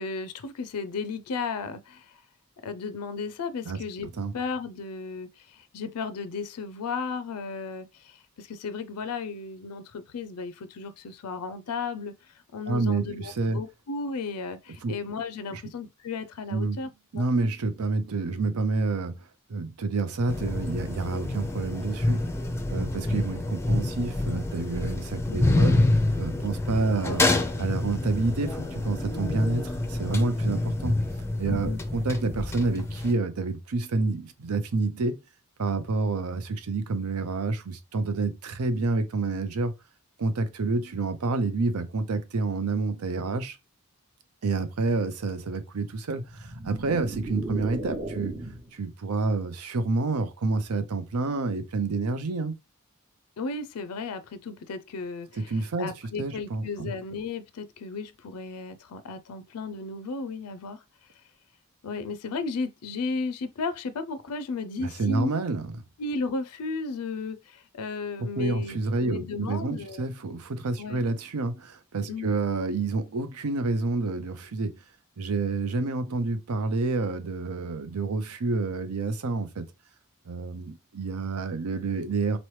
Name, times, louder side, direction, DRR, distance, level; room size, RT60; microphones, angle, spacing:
voice 1, 0.0-2.1 2.6-4.1 4.3-12.1 12.5-16.9 17.1-17.3 25.3-25.6 31.5-31.8 53.4-60.8 61.8-65.3 66.0-70.1 70.8-71.0 72.1-72.3, left 4 dB, 85° left, 0.4 m, -34 dB
voice 2, 12.7-13.6 14.8-14.9 15.5-15.6 16.5-16.8 17.1-19.2 19.5-22.2 22.7-25.8 26.2-27.2 27.6-31.0 31.4-35.2 35.6-39.7 40.2-43.6 44.4-48.4 48.7-52.6 55.4-55.9 56.2-56.9 64.8-65.8 68.2-74.8 75.2-79.7 80.3-82.4, right 3 dB, 80° right, 0.6 m, -28 dB
sound 1, 20.3-33.1, left 2 dB, 10° left, 0.4 m, -27 dB
sound 2, 46.2-48.8, right 2 dB, 30° right, 0.6 m, -36 dB
4.1 x 3.0 x 3.1 m
head